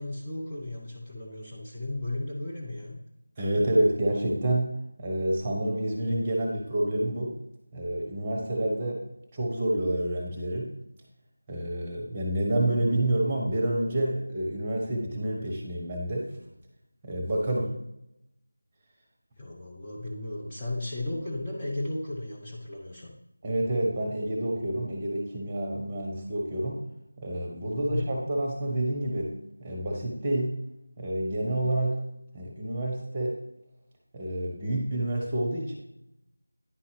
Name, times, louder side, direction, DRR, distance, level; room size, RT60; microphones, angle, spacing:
voice 1, 0.0-3.0 17.4-17.7 19.4-23.1 27.7-28.1, left 2 dB, 15° left, -7 dB, 0.9 m, -35 dB
voice 2, 3.4-4.7 5.0-7.4 7.7-9.0 9.3-10.7 11.5-16.3 17.0-17.7 23.4-26.8 27.2-30.6 31.0-32.0 32.3-33.3 34.1-35.7, right 1 dB, 15° right, -1 dB, 1.2 m, -28 dB
9.9 x 5.5 x 3.3 m, 0.85 s
figure-of-eight pair, 170°, 0 cm